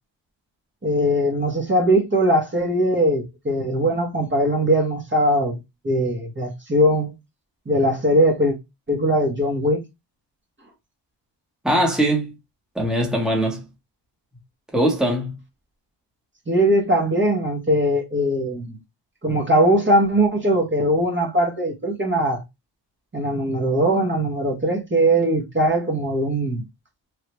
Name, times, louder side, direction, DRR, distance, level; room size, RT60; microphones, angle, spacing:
voice 1, 0.8-5.6 5.8-7.1 7.7-8.6 8.9-9.8 16.5-18.8 19.2-22.4 23.1-26.6, right 1 dB, 25° right, 1.0 m, -20 dB
voice 2, 11.6-12.3 12.7-13.6 14.7-15.3, right 1 dB, ahead, 1.0 m, -21 dB
3.3 x 2.3 x 3.0 m
cardioid pair, 90°, 44 cm